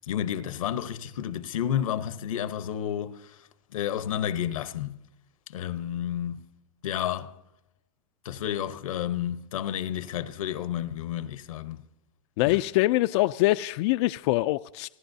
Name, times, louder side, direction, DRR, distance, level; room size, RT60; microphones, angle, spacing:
voice 1, 0.1-3.3 3.7-5.0 5.5-6.5 6.8-7.3 8.2-11.8 12.5-12.6, left 10 dB, 90° left, 1.0 m, -31 dB
voice 2, 12.4-14.9, left 19 dB, 55° left, 0.4 m, -24 dB
29.0 x 11.5 x 2.7 m
supercardioid pair, 130°, 17 cm